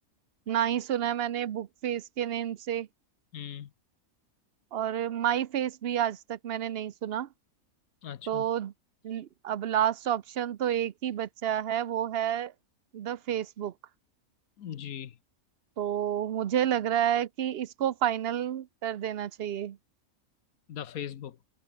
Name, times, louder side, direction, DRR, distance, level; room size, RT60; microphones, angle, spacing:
voice 1, 0.5-2.9 4.7-7.3 8.3-8.7 9.0-12.5 12.9-13.7 15.8-19.8, right 10 dB, 55° right, 0.8 m, -30 dB
voice 2, 3.3-3.7 8.0-8.5 14.6-15.2 20.7-21.4, left 9 dB, 80° left, 1.5 m, -39 dB
omnidirectional pair, 1.5 m